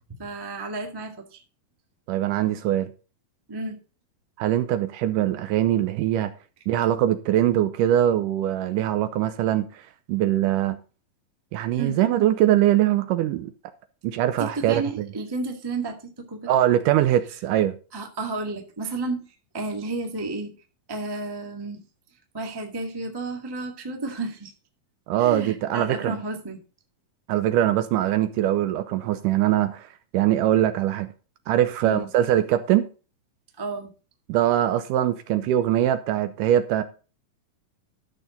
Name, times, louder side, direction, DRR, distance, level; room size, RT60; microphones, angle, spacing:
voice 1, 0.2-1.4 3.5-3.8 11.8-12.0 14.4-16.5 17.9-19.2 19.5-20.5 20.9-21.8 22.3-24.5 25.2-26.6 31.8-32.1 33.6-33.9, right 3 dB, 20° right, 0.7 m, -31 dB
voice 2, 2.1-2.9 4.4-6.3 6.7-10.8 11.5-13.5 14.0-15.1 16.5-17.7 25.1-26.2 27.3-31.1 31.5-32.9 34.3-36.8, right 12 dB, 80° right, 2.0 m, -22 dB
13.0 x 6.6 x 3.9 m
omnidirectional pair, 4.1 m